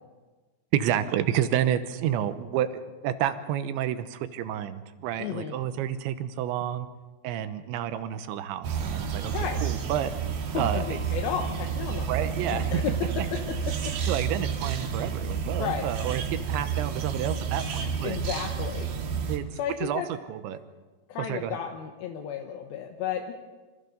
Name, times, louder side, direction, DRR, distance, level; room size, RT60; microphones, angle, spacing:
voice 1, 0.7-6.9 7.2-9.3 9.6-10.1 10.6-10.9 12.1-12.7 14.1-18.2 19.3-19.5 19.8-20.0 20.3-20.6 21.2-21.6, right 10 dB, 80° right, 11 dB, 3.2 m, -29 dB
voice 2, 5.2-5.6 9.3-9.6 10.5-14.0 15.6-15.8 18.0-18.9 19.5-20.1 21.1-23.3, left 8 dB, 70° left, 3 dB, 2.4 m, -33 dB
sound 1, 8.6-19.4, right 7 dB, 55° right, 3.0 m, -30 dB
27.0 x 26.0 x 4.0 m, 1.3 s
omnidirectional pair, 5.4 m